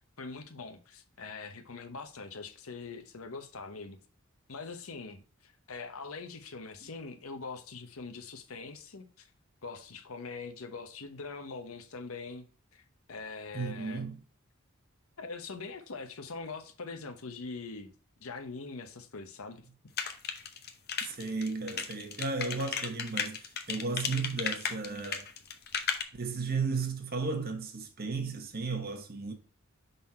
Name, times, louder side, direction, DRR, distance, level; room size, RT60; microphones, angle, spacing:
voice 1, 0.2-4.0 4.5-9.3 9.6-12.5 12.7-14.1 15.2-17.9 18.2-19.6, left 4 dB, 75° left, 0.9 m, -43 dB
voice 2, 13.5-14.2 21.0-25.3 26.1-29.3, right 4 dB, 45° right, 1.2 m, -34 dB
sound 1, 20.0-26.0, left 7 dB, 50° left, 0.8 m, -34 dB
5.6 x 4.1 x 4.4 m
head